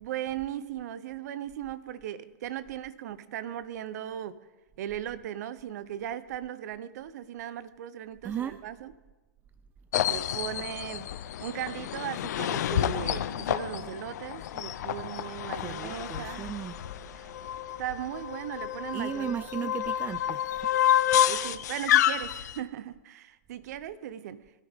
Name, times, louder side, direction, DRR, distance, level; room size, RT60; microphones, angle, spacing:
voice 1, 0.0-4.4 4.8-8.9 10.1-11.1 11.4-16.5 17.1-17.3 17.8-19.8 21.3-24.5, right 11 dB, 60° right, 0.8 m, -37 dB
voice 2, 8.2-8.6 15.6-16.8 18.9-20.7, right 9 dB, 20° right, 0.4 m, -36 dB
sound 1, 9.9-22.6, left 11 dB, 65° left, 0.7 m, -29 dB
22.0 x 13.0 x 3.6 m
hypercardioid pair, 125°, 10 cm